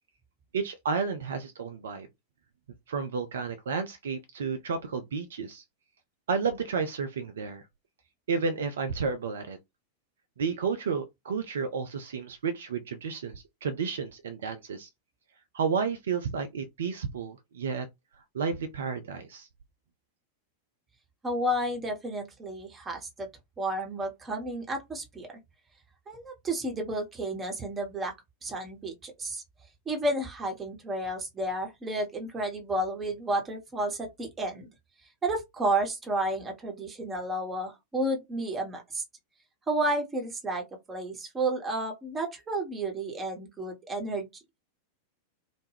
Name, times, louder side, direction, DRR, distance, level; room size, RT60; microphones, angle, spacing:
voice 1, 0.5-2.1 2.9-5.6 6.3-7.6 8.3-9.6 10.4-14.9 15.5-17.9 18.3-19.5, right 5 dB, 65° right, 0.4 m, -31 dB
voice 2, 21.2-23.3 23.6-25.4 26.1-28.1 28.4-29.4 29.9-34.7 35.2-39.0 39.7-44.3, right 1 dB, 20° right, 0.9 m, -31 dB
2.2 x 2.0 x 3.2 m
figure-of-eight pair, 90°, 0 cm